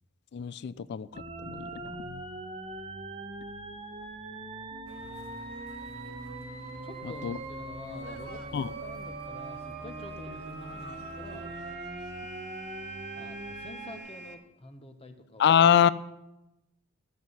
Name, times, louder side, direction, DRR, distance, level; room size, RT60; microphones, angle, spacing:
voice 1, 0.3-1.1 1.4-2.2 7.2-7.4 8.5-8.7 15.4-15.9, left 9 dB, 50° left, 18 dB, 0.4 m, -24 dB
sound 1, 1.1-14.0, right 2 dB, 25° right, 1.0 m, -41 dB
sound 2, 4.7-14.3, right 3 dB, 50° right, 1.2 m, -48 dB
sound 3, 4.9-11.8, right 3 dB, 70° right, 1.3 m, -53 dB
voice 2, 6.8-11.5 13.2-15.6, left 2 dB, 25° left, 7 dB, 1.0 m, -47 dB
15.0 x 7.7 x 5.5 m, 0.96 s
head